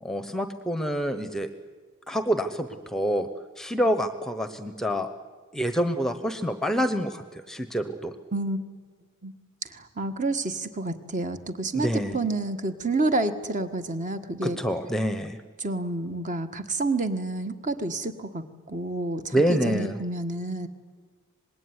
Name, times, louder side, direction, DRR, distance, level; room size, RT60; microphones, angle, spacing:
voice 1, 0.0-1.5 2.1-3.3 3.6-5.1 5.5-8.1 11.7-12.2 14.4-15.4 19.3-20.0, equal, ahead, 10 dB, 0.9 m, -27 dB
voice 2, 9.7-14.6 15.6-20.7, right 2 dB, 35° right, 8 dB, 1.5 m, -29 dB
25.5 x 20.0 x 9.7 m, 1.5 s
head